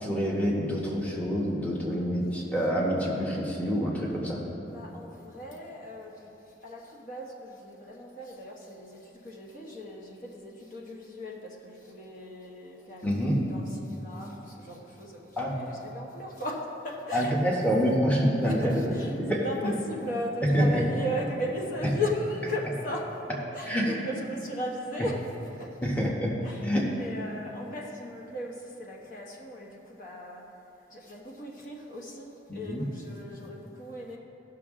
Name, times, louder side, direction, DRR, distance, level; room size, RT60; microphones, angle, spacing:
voice 1, 0.0-4.4 13.0-13.4 15.4-15.6 17.1-19.7 20.5-20.8 23.7-23.9 25.8-26.3 26.6-26.8 32.5-32.8, equal, 10° left, -4 dB, 1.1 m, -27 dB
voice 2, 4.7-6.3 6.6-18.0 18.4-23.2 23.5-25.9 26.4-30.4 30.9-34.2, left 1 dB, 45° left, -2 dB, 1.1 m, -37 dB
16.5 x 6.1 x 3.7 m, 3.0 s
head